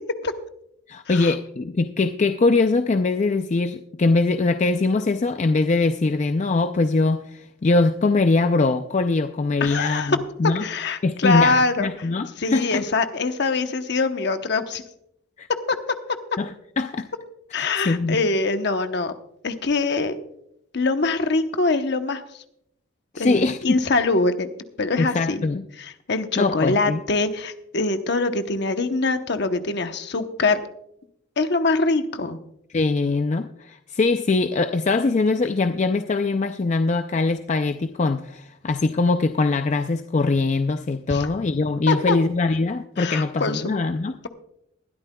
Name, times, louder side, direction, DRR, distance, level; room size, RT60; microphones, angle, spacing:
voice 1, 0.9-10.6 11.0-12.8 15.4-15.5 16.4-17.1 17.6-18.2 23.1-23.8 25.0-25.6 26.4-27.0 32.7-44.1, left 3 dB, 35° left, 8 dB, 0.4 m, -22 dB
voice 2, 9.6-10.2 10.6-11.9 12.4-14.8 15.7-15.8 17.5-19.1 19.4-20.2 20.7-22.2 23.2-24.5 24.8-25.5 25.8-30.6 31.4-32.4 41.1-41.3 41.9-42.2 43.0-43.6, left 3 dB, 55° left, 8 dB, 0.9 m, -23 dB
20.0 x 12.5 x 2.3 m, 0.77 s
head